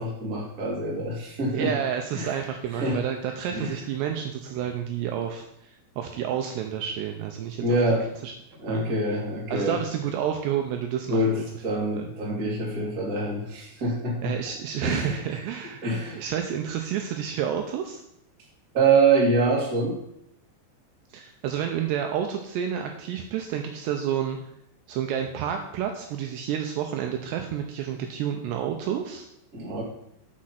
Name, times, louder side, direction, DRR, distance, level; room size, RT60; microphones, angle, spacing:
voice 1, 0.0-1.7 2.1-2.4 2.7-3.0 3.5-3.8 7.6-8.1 8.6-9.8 11.1-14.3 14.8-15.4 15.8-16.2 18.7-20.0 29.5-29.8, right 3 dB, 45° right, -3 dB, 1.1 m, -25 dB
voice 2, 1.5-7.6 8.2-8.3 8.7-8.9 9.5-11.4 11.9-12.1 14.2-15.8 16.2-18.0 21.1-24.4 24.9-29.3, right 9 dB, 85° right, 4 dB, 2.5 m, -30 dB
6.4 x 6.3 x 5.8 m, 0.76 s
omnidirectional pair, 5.5 m